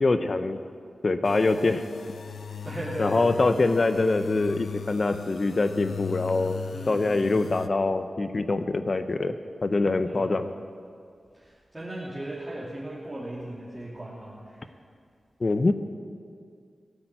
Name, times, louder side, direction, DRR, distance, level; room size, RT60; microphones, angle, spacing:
voice 1, 0.0-0.6 1.0-1.8 3.0-6.6 6.9-9.4 9.6-10.5 15.4-15.7, left 3 dB, 45° left, 9 dB, 0.7 m, -24 dB
sound 1, 1.2-7.7, left 7 dB, 85° left, 0.5 m, -38 dB
voice 2, 2.6-3.3 6.7-7.5 10.0-10.4 11.3-14.7, right 1 dB, 15° right, -8 dB, 2.9 m, -38 dB
17.5 x 8.9 x 8.9 m, 2.2 s
wide cardioid pair, 100°, 0 cm